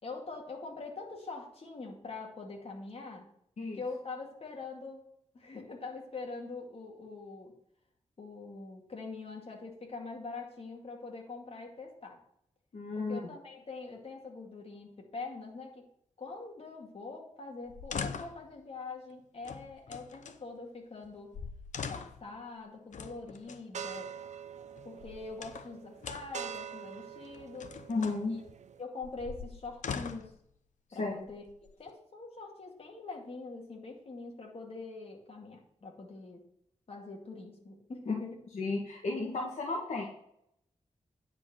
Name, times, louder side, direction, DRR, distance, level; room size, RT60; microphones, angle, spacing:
voice 1, 0.0-3.3 3.7-5.0 5.3-7.5 8.2-12.2 13.0-15.8 16.2-21.3 21.8-24.1 24.8-27.8 28.3-28.4 28.8-30.3 30.9-31.4 31.8-36.4 36.9-38.4, left 3 dB, 50° left, 0 dB, 2.2 m, -44 dB
voice 2, 12.7-13.2 27.9-28.4 31.0-31.2 38.1-38.2 38.5-40.1, left 3 dB, 65° left, -1 dB, 1.5 m, -33 dB
sound 1, 17.7-18.5 19.4-20.4 21.0-21.1 21.3-22.3 22.9-23.6 24.8-25.7 26.0-26.5 27.3-28.2 29.0-30.4 31.2-31.9, left 6 dB, 80° left, 0.7 m, -42 dB
sound 2, 23.7-28.8, right 8 dB, 70° right, 0.6 m, -45 dB
9.8 x 4.3 x 7.5 m, 0.73 s
wide cardioid pair, 110°, 12 cm